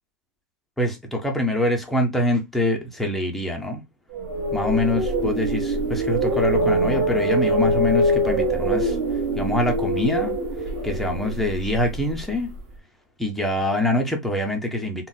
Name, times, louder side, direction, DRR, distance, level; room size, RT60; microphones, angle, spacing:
voice 1, 0.8-3.8 4.5-9.0 9.4-10.4 10.8-12.5 13.2-15.1, left 1 dB, ahead, 0.4 m, -24 dB
sound 1, 4.1-12.2, right 1 dB, 35° right, 1.1 m, -23 dB
3.8 x 2.0 x 2.3 m
supercardioid pair, 180°, 10 cm